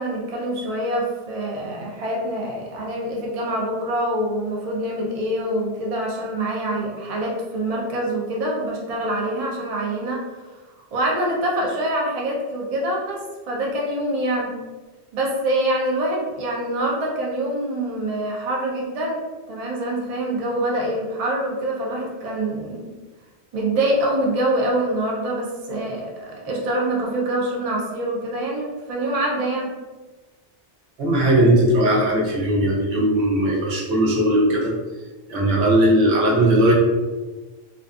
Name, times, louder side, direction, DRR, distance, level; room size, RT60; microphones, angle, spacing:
voice 1, 0.0-10.2 10.9-13.2 13.5-14.5 15.1-19.2 19.5-22.9 23.5-29.7, right 1 dB, 45° right, -2 dB, 0.5 m, -25 dB
voice 2, 31.0-34.7 35.3-36.7, right 1 dB, 80° right, -3 dB, 0.9 m, -18 dB
2.5 x 2.3 x 2.4 m, 1.2 s
omnidirectional pair, 1.1 m